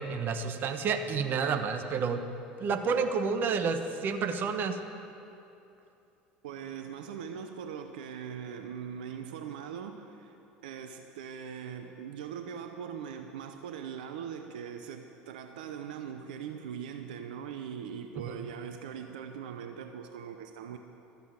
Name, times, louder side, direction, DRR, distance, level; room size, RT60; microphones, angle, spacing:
voice 1, 0.0-2.3 2.6-4.8 18.2-18.4, right 5 dB, 45° right, 8 dB, 1.1 m, -30 dB
voice 2, 6.4-10.4 10.6-20.8, right 7 dB, 80° right, 6 dB, 0.7 m, -41 dB
13.5 x 8.0 x 9.2 m, 2.7 s
hypercardioid pair, 80°, 5 cm